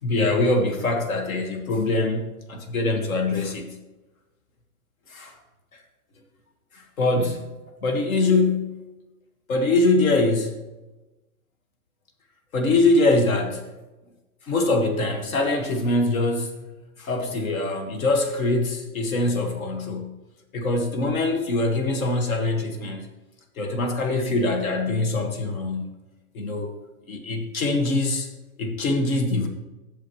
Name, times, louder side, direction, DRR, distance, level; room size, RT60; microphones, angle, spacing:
voice 1, 0.0-3.8 5.1-5.3 6.7-7.5 7.8-8.9 9.5-10.5 12.5-13.7 14.5-16.6 17.0-20.2 20.5-23.1 23.6-25.9 26.3-26.7 27.1-28.3 28.6-29.5, left 2 dB, 65° left, 4 dB, 1.7 m, -23 dB
11.0 x 7.1 x 3.1 m, 1.1 s
hypercardioid pair, 170°, 44 cm